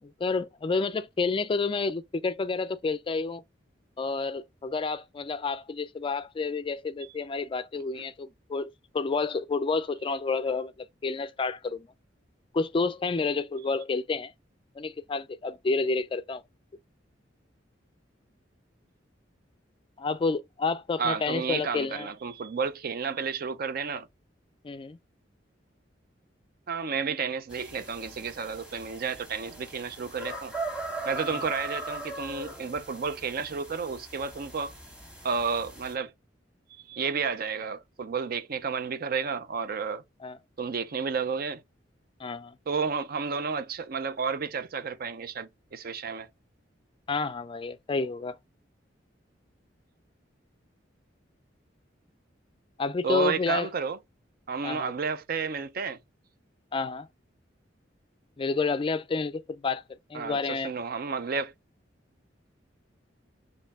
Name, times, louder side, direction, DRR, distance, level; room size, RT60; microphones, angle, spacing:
voice 1, 0.0-3.4 4.0-11.9 12.5-14.3 14.8-16.4 20.0-22.1 24.6-25.0 40.2-40.4 42.2-42.6 47.1-48.4 52.8-53.7 54.6-54.9 56.7-57.1 58.4-59.8 60.1-60.7, left 4 dB, 30° left, 0.3 m, -30 dB
voice 2, 21.0-24.1 26.7-30.5 31.0-34.7 35.2-36.1 36.7-40.0 40.6-41.6 42.7-46.3 53.0-54.0 54.5-56.0 60.1-61.5, right 5 dB, 55° right, 0.5 m, -31 dB
sound 1, 27.5-35.9, right 1 dB, 5° right, 1.6 m, -40 dB
4.4 x 3.1 x 3.4 m
head